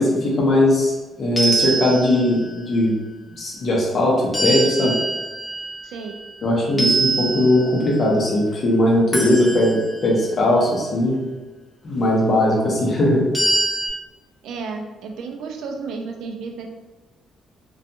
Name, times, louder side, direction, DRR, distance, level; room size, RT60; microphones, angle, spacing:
voice 1, 0.0-2.9 3.4-4.9 6.4-11.2 11.8-13.3, left 1 dB, 50° left, -3 dB, 0.9 m, -19 dB
sound 1, 1.4-2.5 4.3-6.4 6.8-8.0 9.1-10.2 13.3-13.9, right 2 dB, 20° left, 0.6 m, -24 dB
voice 2, 5.8-6.2 14.4-16.7, right 4 dB, 80° right, 3 dB, 0.4 m, -32 dB
2.5 x 2.3 x 2.7 m, 1.2 s
cardioid pair, 90°, 0 cm